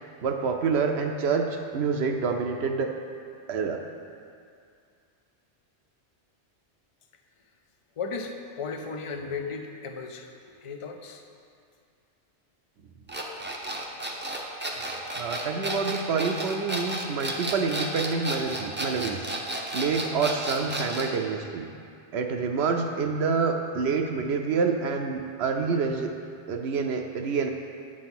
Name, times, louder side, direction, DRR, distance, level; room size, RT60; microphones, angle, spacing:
voice 1, 0.2-2.9 3.5-3.8 15.2-19.3 19.7-21.7 22.1-26.1 26.5-27.5, right 5 dB, 70° right, 4 dB, 0.8 m, -27 dB
voice 2, 8.0-11.2, left 4 dB, 55° left, 5 dB, 0.3 m, -35 dB
sound 1, 13.1-21.2, right 1 dB, 15° right, 0.4 m, -32 dB
9.0 x 3.7 x 5.9 m, 2.3 s
omnidirectional pair, 1.2 m